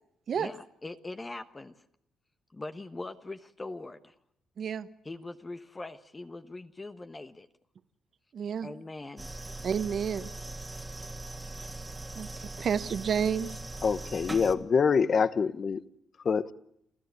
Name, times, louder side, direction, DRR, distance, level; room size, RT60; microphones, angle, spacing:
voice 1, 0.3-1.8 2.5-4.1 5.0-7.5 8.6-9.4, left 2 dB, 20° left, 1.1 m, -41 dB
voice 2, 4.6-4.9 8.3-8.7 9.6-10.3 12.1-13.6, right 7 dB, 55° right, 1.2 m, -30 dB
sound 1, 9.2-14.5, right 2 dB, 15° right, 2.0 m, -40 dB
voice 3, 13.8-15.8 16.2-16.5, left 5 dB, 45° left, 1.1 m, -25 dB
28.5 x 14.5 x 8.2 m
cardioid pair, 90°, 0 cm